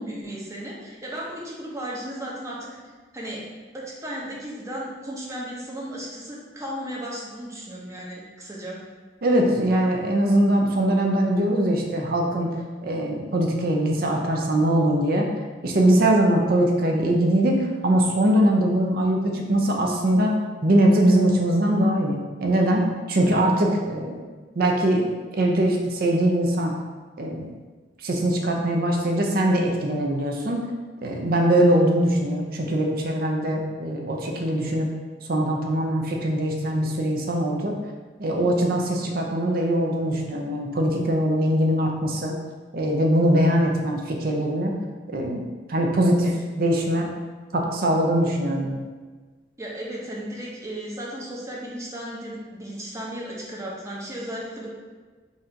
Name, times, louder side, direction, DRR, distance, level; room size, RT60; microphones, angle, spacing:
voice 1, 0.0-2.7 3.1-3.5 3.7-8.8 49.6-54.7, equal, 15° right, -4 dB, 0.7 m, -35 dB
voice 2, 9.2-12.6 12.8-15.3 15.6-17.6 17.8-20.3 20.6-24.2 24.5-25.1 25.4-26.7 27.2-27.5 28.0-30.6 31.0-34.9 35.3-37.7 38.2-42.3 42.7-44.8 45.1-45.4 45.7-47.1 47.5-48.8, right 1 dB, 55° right, 1 dB, 0.6 m, -22 dB
4.1 x 2.5 x 4.4 m, 1.4 s
head